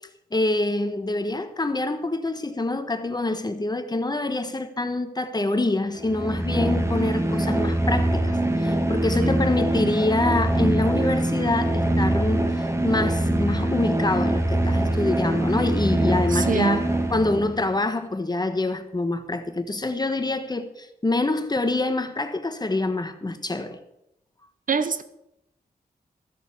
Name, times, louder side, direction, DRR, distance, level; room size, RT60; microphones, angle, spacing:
voice 1, 0.3-12.4 12.8-16.9 17.1-23.8, left 2 dB, 25° left, 1.2 m, -26 dB
sound 1, 6.0-17.7, right 1 dB, 15° right, 1.5 m, -23 dB
voice 2, 16.3-16.8 24.7-25.0, right 5 dB, 55° right, 0.8 m, -25 dB
13.5 x 7.3 x 6.9 m
cardioid pair, 70°, 16 cm